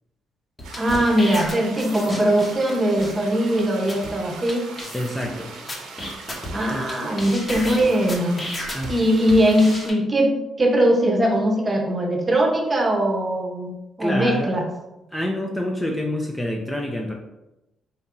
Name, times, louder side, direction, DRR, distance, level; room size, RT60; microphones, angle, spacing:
sound 1, 0.6-2.7 3.0-3.1 3.6-3.7 3.9-4.1 4.5-4.6 4.8-5.3 5.7-6.9 7.2-8.9 9.3-9.9, left 1 dB, 25° left, 1.0 m, -32 dB
sound 2, 0.6-9.9, right 3 dB, 90° right, 0.8 m, -40 dB
voice 1, 0.8-4.6 6.5-8.4 8.9-14.6, right 1 dB, 30° right, 1 dB, 0.9 m, -20 dB
voice 2, 4.9-5.5 6.7-6.8 8.7-9.0 14.0-14.5 15.1-17.1, left 1 dB, 10° left, 1 dB, 0.5 m, -27 dB
4.0 x 2.7 x 3.7 m, 0.94 s
cardioid pair, 90°, 0 cm